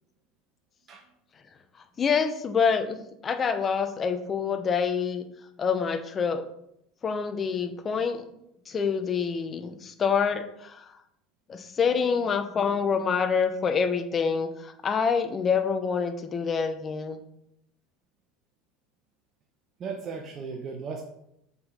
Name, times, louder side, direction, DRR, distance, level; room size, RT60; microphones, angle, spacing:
voice 1, 2.0-5.2 5.6-6.4 7.0-8.2 8.7-10.8 11.5-17.2, left 6 dB, 30° left, 8 dB, 0.9 m, -26 dB
voice 2, 19.8-21.0, right 5 dB, 40° right, 1 dB, 1.0 m, -36 dB
6.8 x 5.6 x 4.1 m, 0.78 s
hypercardioid pair, 75°, 0 cm